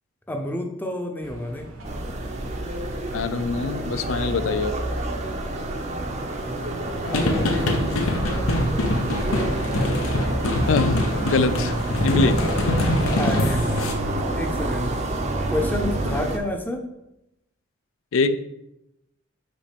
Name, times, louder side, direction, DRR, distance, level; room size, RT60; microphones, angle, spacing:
voice 1, 0.3-1.7 6.4-6.8 7.1-7.5 13.1-13.9 14.3-15.0 15.5-16.8, left 1 dB, 10° left, 3 dB, 0.7 m, -29 dB
sound 1, 1.2-14.3, right 1 dB, 75° right, 1.1 m, -41 dB
sound 2, 1.8-16.4, right 1 dB, 35° right, 0.6 m, -28 dB
voice 2, 3.1-4.7 10.7-11.8 12.0-12.4 16.0-16.2 18.1-18.4, left 4 dB, 70° left, 12 dB, 0.4 m, -23 dB
sound 3, 7.0-13.9, left 1 dB, 85° left, 0.9 m, -24 dB
5.2 x 4.1 x 5.1 m, 0.89 s
head